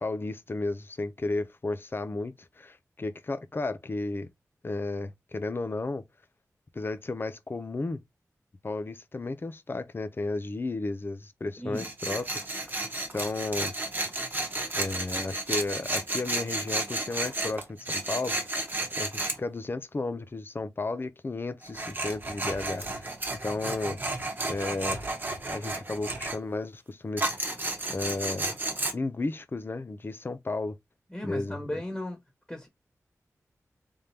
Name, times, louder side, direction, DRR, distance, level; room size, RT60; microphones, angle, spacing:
voice 1, 0.0-4.3 4.6-6.0 6.7-8.0 8.6-12.9 13.1-13.7 14.8-18.6 19.0-23.1 23.4-24.0 24.5-25.0 25.5-27.5 27.9-28.5 28.9-30.8 31.2-31.6, left 3 dB, 40° left, 0.6 m, -33 dB
Tools, 11.8-19.4 21.6-26.4 27.2-28.9, right 2 dB, 35° right, 1.1 m, -32 dB
voice 2, 31.1-32.2 32.5-32.7, left 1 dB, 15° left, 1.5 m, -35 dB
3.5 x 3.5 x 2.8 m
wide cardioid pair, 75°, 6 cm